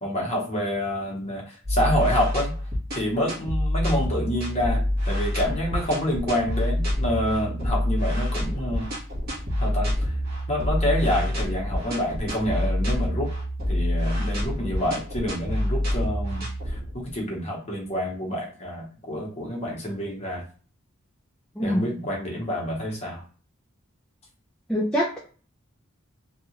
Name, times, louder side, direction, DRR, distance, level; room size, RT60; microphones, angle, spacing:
voice 1, 0.0-2.5 2.9-8.9 9.6-10.1 10.5-13.3 13.7-20.4 21.6-23.2, equal, 30° left, -1 dB, 0.8 m, -28 dB
sound 1, 1.6-17.2, left 1 dB, 45° right, 1.1 m, -27 dB
voice 2, 21.6-22.0 24.7-25.2, equal, 5° left, -5 dB, 0.3 m, -25 dB
2.7 x 2.3 x 2.8 m, 0.40 s
head